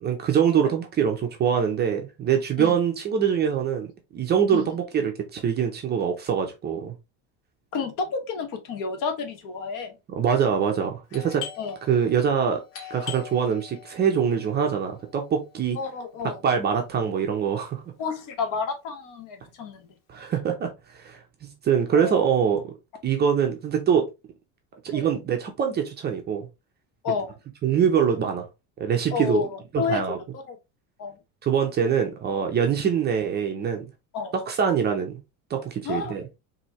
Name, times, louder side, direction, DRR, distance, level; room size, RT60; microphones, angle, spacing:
voice 1, 0.0-3.9 4.1-6.9 10.2-11.4 11.9-12.6 12.9-15.8 16.4-17.8 20.1-22.7 23.0-24.1 24.8-26.5 27.6-28.5 28.8-29.4 29.7-30.2 31.4-33.8 34.3-35.2 35.5-36.2, right 7 dB, 25° right, 0.6 m, -24 dB
voice 2, 7.7-10.0 11.6-11.8 15.7-16.4 18.0-19.9 21.9-22.2 24.9-25.1 27.0-27.3 29.1-30.6 31.0-31.2 34.1-34.3 35.8-36.1, left 5 dB, 50° left, 1.1 m, -30 dB
Doorbell, 11.1-16.5, left 9 dB, 80° left, 1.7 m, -43 dB
4.2 x 2.7 x 3.0 m
cardioid pair, 155°, 40 cm